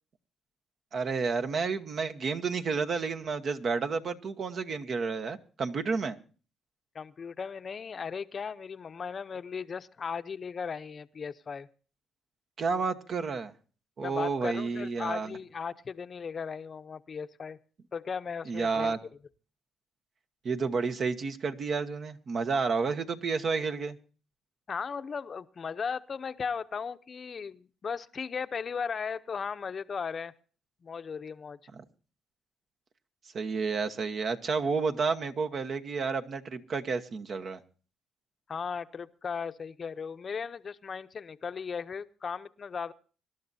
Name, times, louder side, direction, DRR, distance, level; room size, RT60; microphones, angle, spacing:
voice 1, 0.9-6.2 12.6-13.5 14.0-15.4 18.5-19.0 20.4-24.0 31.7-31.8 33.3-37.6, right 4 dB, 55° right, 8 dB, 1.1 m, -31 dB
voice 2, 6.9-11.7 14.0-17.6 17.9-18.9 24.7-30.3 30.8-31.6 38.5-42.9, left 6 dB, 45° left, 11 dB, 0.7 m, -37 dB
25.5 x 12.0 x 2.7 m, 0.38 s
cardioid pair, 90°, 0 cm